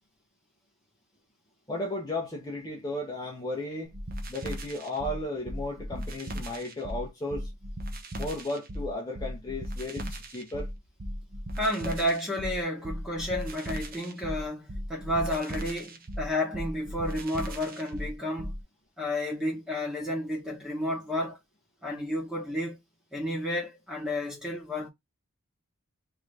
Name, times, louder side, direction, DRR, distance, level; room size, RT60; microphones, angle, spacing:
voice 1, 1.7-3.9 4.3-7.5 8.2-10.7, left 1 dB, 20° left, 0.9 m, -34 dB
sound 1, 3.9-18.6, equal, 40° right, 0.8 m, -37 dB
voice 2, 11.5-18.5 19.0-21.4 21.8-22.8 23.1-24.9, left 1 dB, 5° right, 1.5 m, -31 dB
3.8 x 2.9 x 3.3 m
head